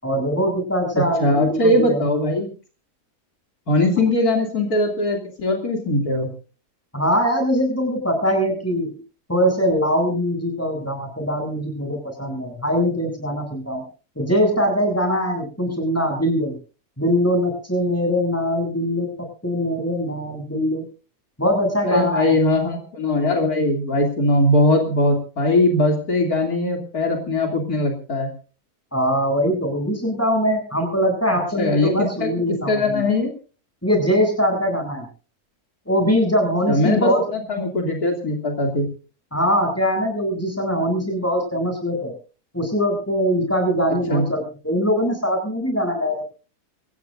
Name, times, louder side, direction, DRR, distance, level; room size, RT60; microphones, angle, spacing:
voice 1, 0.0-2.0 6.9-9.0 9.3-13.8 14.2-16.6 17.0-19.1 19.4-20.9 21.4-22.3 28.9-33.0 33.8-35.1 35.9-37.2 39.3-42.1 42.5-46.2, equal, 10° left, 2 dB, 7.8 m, -22 dB
voice 2, 0.9-2.5 3.7-6.3 21.8-28.3 31.6-32.3 32.7-33.3 36.7-38.8 44.1-44.2, left 1 dB, 70° left, 2 dB, 3.5 m, -20 dB
27.0 x 15.5 x 2.6 m, 0.37 s
omnidirectional pair, 1.7 m